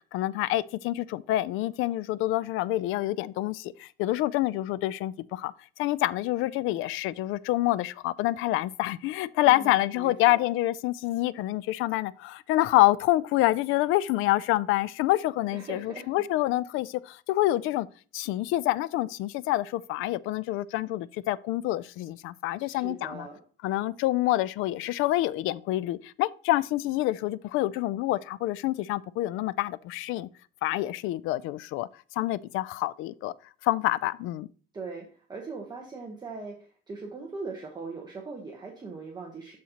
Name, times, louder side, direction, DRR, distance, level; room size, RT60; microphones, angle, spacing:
voice 1, 0.0-5.5 5.8-17.9 18.1-23.3 23.6-30.3 30.6-31.9 32.2-33.3 33.6-34.5, left 16 dB, 75° left, 0.4 m, -27 dB
voice 2, 9.4-10.4 15.5-16.2 22.6-23.4 34.7-39.6, right 4 dB, 20° right, 1.1 m, -40 dB
12.0 x 4.2 x 2.9 m
cardioid pair, 155°, 21 cm